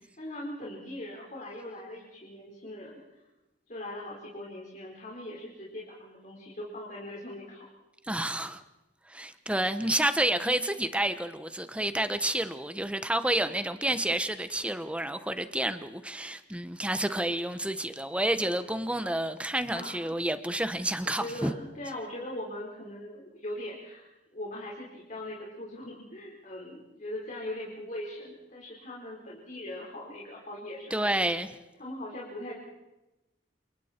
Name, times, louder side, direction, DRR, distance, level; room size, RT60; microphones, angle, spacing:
voice 1, 0.2-3.0 3.7-7.7 19.7-20.1 21.0-31.1 31.8-32.5, left 1 dB, 45° left, 4.5 m, -40 dB
voice 2, 8.1-8.6 9.1-21.5 30.9-31.5, right 1 dB, 5° right, 1.0 m, -29 dB
28.5 x 28.0 x 4.5 m
head